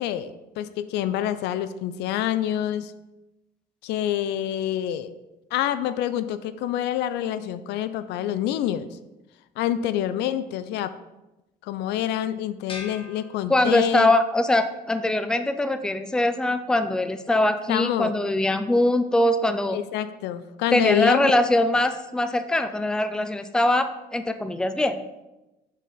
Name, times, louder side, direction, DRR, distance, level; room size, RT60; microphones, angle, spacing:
voice 1, 0.0-2.9 3.8-5.1 5.5-8.9 9.6-10.9 11.6-14.2 17.7-18.1 19.7-21.3, left 11 dB, 85° left, 13 dB, 0.4 m, -27 dB
sound 1, 12.7-14.2, left 4 dB, 30° left, 1.1 m, -42 dB
voice 2, 13.5-19.8 20.7-25.0, left 1 dB, 5° left, 9 dB, 0.4 m, -22 dB
7.1 x 4.2 x 3.9 m, 0.99 s
cardioid pair, 110°, 17 cm